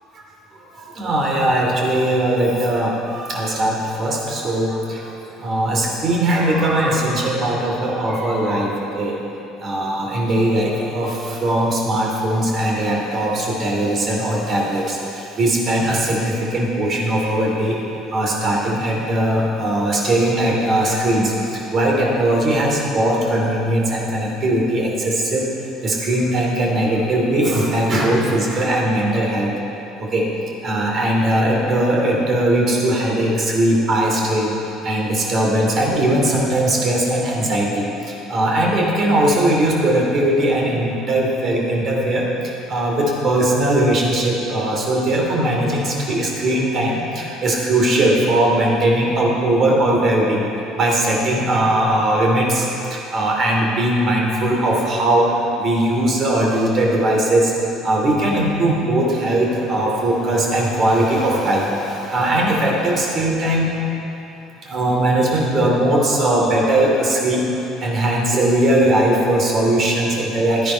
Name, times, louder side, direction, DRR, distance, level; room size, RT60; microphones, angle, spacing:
voice 1, 0.7-9.1 9.6-17.8 18.1-25.5 25.8-29.5 30.0-30.3 30.6-34.6 34.8-50.5 50.7-55.3 55.6-57.5 57.8-63.7 64.6-67.4 67.8-70.7, right 1 dB, 45° right, -2 dB, 2.6 m, -19 dB
12.0 x 10.0 x 4.4 m, 3.0 s
figure-of-eight pair, 60°, 0 cm